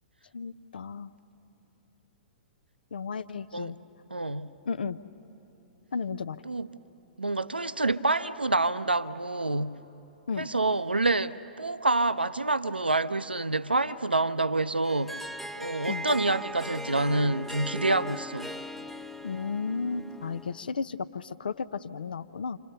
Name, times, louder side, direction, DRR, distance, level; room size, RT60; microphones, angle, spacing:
voice 1, 0.3-1.1 2.9-3.8 4.7-5.0 5.9-6.4 10.3-10.5 15.9-16.1 19.2-22.6, left 5 dB, 70° left, 14 dB, 0.5 m, -33 dB
voice 2, 4.1-4.5 6.4-6.7 7.2-9.8 10.4-15.2 15.6-18.5, right 2 dB, 85° right, 14 dB, 0.5 m, -27 dB
Harp, 14.8-20.6, equal, ahead, 0.5 m, -39 dB
28.0 x 27.0 x 6.7 m, 2.9 s
figure-of-eight pair, 110°, 5 cm